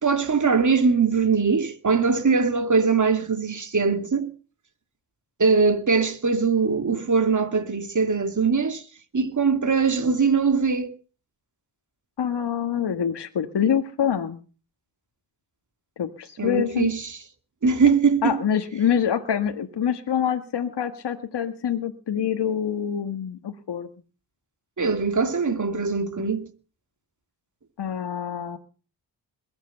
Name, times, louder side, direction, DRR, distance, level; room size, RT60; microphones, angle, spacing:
voice 1, 0.0-4.3 5.4-8.8 9.1-10.9 16.4-17.2 17.6-18.4 24.8-26.5, right 5 dB, 45° right, 2.6 m, -21 dB
voice 2, 12.2-14.4 16.0-16.9 18.2-23.9 27.8-28.6, left 8 dB, 70° left, 1.7 m, -25 dB
21.5 x 8.1 x 8.0 m
cardioid pair, 50°, 42 cm